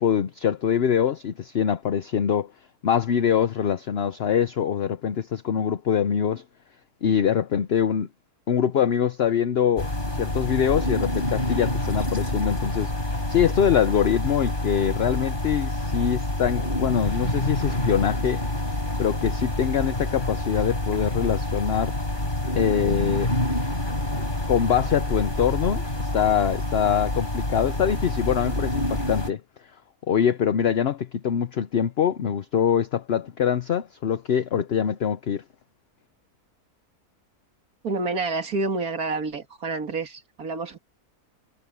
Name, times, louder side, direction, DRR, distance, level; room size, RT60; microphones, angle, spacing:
voice 1, 0.0-2.5 2.8-6.4 7.0-8.1 8.5-18.4 19.0-21.9 22.6-23.3 24.5-29.4 30.1-35.4, left 8 dB, 50° left, 0.8 m, -24 dB
sound 1, 9.8-29.3, left 1 dB, 30° left, 4.9 m, -27 dB
voice 2, 37.8-40.8, right 3 dB, 70° right, 2.4 m, -28 dB
omnidirectional pair, 1.6 m